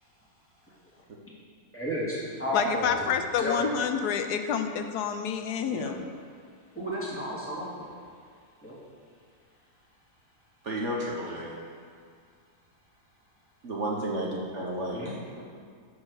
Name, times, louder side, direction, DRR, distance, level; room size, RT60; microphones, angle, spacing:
voice 1, 1.7-3.1 3.4-3.7 6.7-8.0 8.6-8.8 14.9-15.2, equal, 10° left, -7 dB, 2.4 m, -32 dB
voice 2, 2.5-6.1, left 7 dB, 80° left, 7 dB, 1.2 m, -28 dB
voice 3, 10.6-11.5 13.6-15.0 15.4-15.5, right 1 dB, 50° right, -3 dB, 1.3 m, -32 dB
12.5 x 4.7 x 6.4 m, 2.1 s
omnidirectional pair, 1.7 m